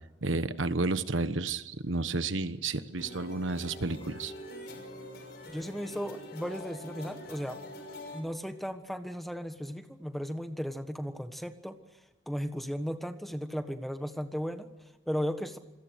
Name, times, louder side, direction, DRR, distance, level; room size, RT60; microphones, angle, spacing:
voice 1, 0.2-4.3, right 3 dB, 80° right, 12 dB, 1.3 m, -31 dB
sound 1, 3.0-8.2, left 1 dB, 55° left, 5.9 m, -45 dB
voice 2, 5.5-7.6 8.1-11.8 12.3-15.6, equal, ahead, 8 dB, 1.4 m, -36 dB
27.0 x 22.5 x 6.5 m, 1.1 s
head